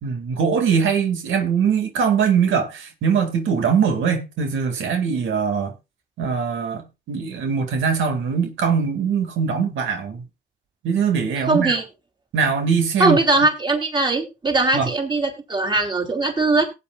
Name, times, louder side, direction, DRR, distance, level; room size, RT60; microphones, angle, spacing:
voice 1, 0.0-5.7 6.2-10.2 10.8-11.8 12.3-13.2 14.7-14.9, right 6 dB, 80° right, 2.2 m, -22 dB
voice 2, 11.4-11.8 13.0-16.6, right 2 dB, 25° right, 3.2 m, -20 dB
18.0 x 8.6 x 2.4 m
cardioid pair, 90°, 20 cm